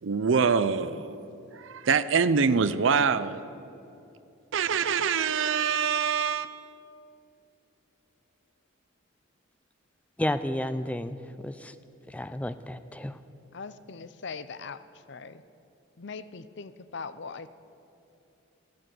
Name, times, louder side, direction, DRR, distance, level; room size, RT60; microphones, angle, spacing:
voice 1, 0.0-1.2 1.5-3.4 4.5-6.7, right 6 dB, 70° right, 14 dB, 0.5 m, -25 dB
voice 2, 10.2-11.8 12.1-13.2, left 1 dB, 5° left, 12 dB, 0.4 m, -32 dB
voice 3, 13.5-14.8 15.1-15.4 16.0-17.5, left 5 dB, 60° left, 13 dB, 0.6 m, -40 dB
13.5 x 12.0 x 7.7 m, 2.8 s
head